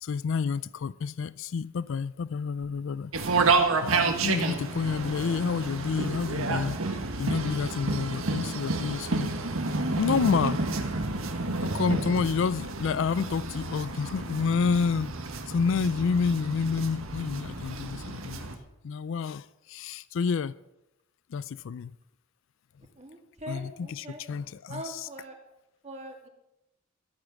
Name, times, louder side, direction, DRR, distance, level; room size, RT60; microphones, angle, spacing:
voice 1, 0.0-3.1 3.8-9.3 10.0-10.6 11.6-15.2 15.5-18.5 18.8-20.5 21.3-21.9 23.5-25.1, left 5 dB, 65° left, 0.4 m, -29 dB
sound 1, 3.1-18.6, right 3 dB, 85° right, 1.6 m, -30 dB
voice 2, 23.0-24.2 24.7-25.4 25.8-26.3, right 1 dB, 35° right, 2.7 m, -42 dB
13.5 x 8.9 x 7.1 m
head